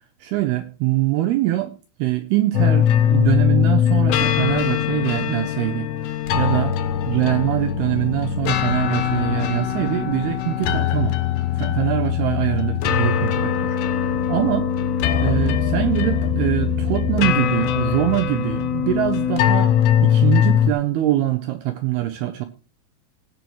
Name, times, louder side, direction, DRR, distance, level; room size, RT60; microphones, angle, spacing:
voice 1, 0.2-1.7 2.0-5.9 6.3-6.8 7.1-11.2 11.6-14.7 15.2-19.7 20.0-22.4, right 15 dB, 80° right, 2.4 m, -23 dB
sound 1, 2.5-20.7, left 9 dB, 75° left, 3.0 m, -21 dB
18.0 x 7.8 x 3.0 m
omnidirectional pair, 5.3 m